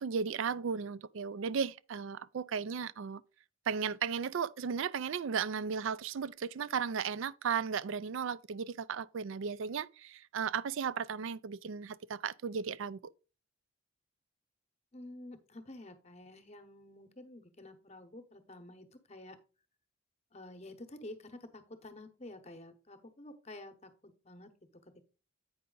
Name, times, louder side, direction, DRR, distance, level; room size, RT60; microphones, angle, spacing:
voice 1, 0.0-3.2 3.7-13.1, right 6 dB, 65° right, 0.4 m, -35 dB
voice 2, 14.9-19.4 20.3-25.0, left 1 dB, 30° left, 0.9 m, -50 dB
8.7 x 5.5 x 3.8 m
head